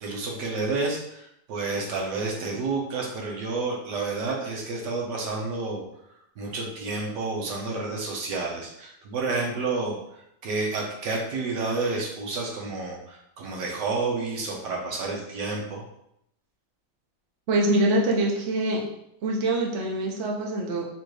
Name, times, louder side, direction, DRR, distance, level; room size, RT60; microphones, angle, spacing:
voice 1, 0.0-5.8 6.4-10.0 10.4-15.8, right 3 dB, 70° right, -1 dB, 1.5 m, -30 dB
voice 2, 17.5-18.8 19.2-20.8, right 1 dB, 55° right, -1 dB, 0.9 m, -24 dB
4.3 x 2.5 x 4.7 m, 0.78 s
omnidirectional pair, 2.0 m